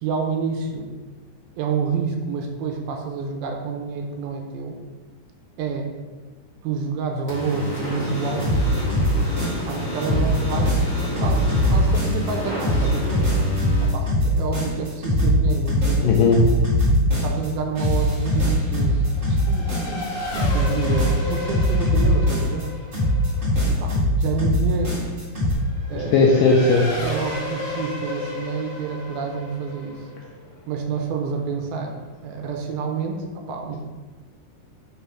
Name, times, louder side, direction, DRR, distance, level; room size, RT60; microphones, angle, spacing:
voice 1, 0.0-0.9 1.6-4.8 5.6-5.9 6.6-8.5 9.7-13.2 13.8-16.2 17.1-22.7 23.7-24.9 25.9-26.2 26.9-30.1 30.7-32.0 32.2-33.8, right 5 dB, 80° right, 2 dB, 2.5 m, -28 dB
sound 1, 7.3-13.8, equal, 35° left, 1.4 m, -30 dB
sound 2, 8.4-9.7 10.0-12.3 12.6-17.5 17.8-20.1 20.3-22.6 22.9-25.5, left 1 dB, 30° right, 1.4 m, -21 dB
voice 2, 16.0-16.4 25.9-26.9, left 3 dB, 85° left, -1 dB, 1.9 m, -17 dB
Race car auto racing / Accelerating revving vroom, 17.5-31.6, left 2 dB, 65° left, 2.6 m, -35 dB
5.8 x 3.5 x 5.6 m, 1.3 s
omnidirectional pair, 4.5 m